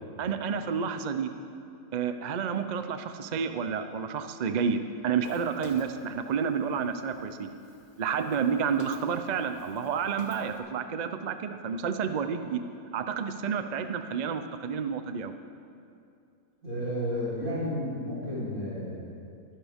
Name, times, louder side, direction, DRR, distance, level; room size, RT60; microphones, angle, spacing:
voice 1, 0.2-1.3 1.9-7.5 8.0-12.6 12.9-15.3, right 6 dB, 50° right, 8 dB, 0.5 m, -30 dB
Walk footsteps, 5.2-10.6, left 1 dB, 70° left, 2.0 m, -52 dB
voice 2, 16.6-19.0, equal, 75° right, -10 dB, 4.7 m, -32 dB
23.0 x 9.9 x 3.6 m, 2.5 s
omnidirectional pair, 1.5 m